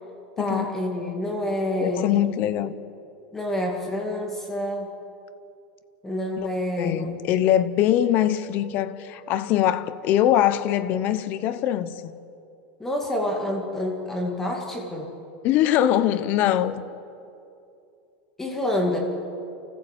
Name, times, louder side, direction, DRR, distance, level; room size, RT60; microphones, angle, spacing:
voice 1, 0.4-2.2 3.3-4.9 6.0-7.2 12.8-15.1 18.4-19.0, left 1 dB, 5° left, 2.1 m, -28 dB
voice 2, 1.8-2.7 6.4-6.5 6.8-12.1 15.4-16.8, left 11 dB, 35° left, 0.9 m, -22 dB
28.5 x 14.5 x 8.2 m
supercardioid pair, 170°, 5 cm